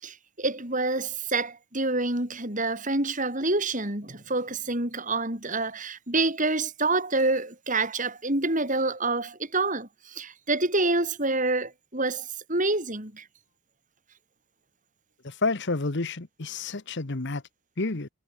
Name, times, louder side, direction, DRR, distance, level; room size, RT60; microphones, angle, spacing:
voice 1, 0.0-13.2, right 2 dB, 35° right, 4.8 m, -27 dB
voice 2, 15.2-17.4 17.8-18.1, left 3 dB, 50° left, 1.1 m, -29 dB
head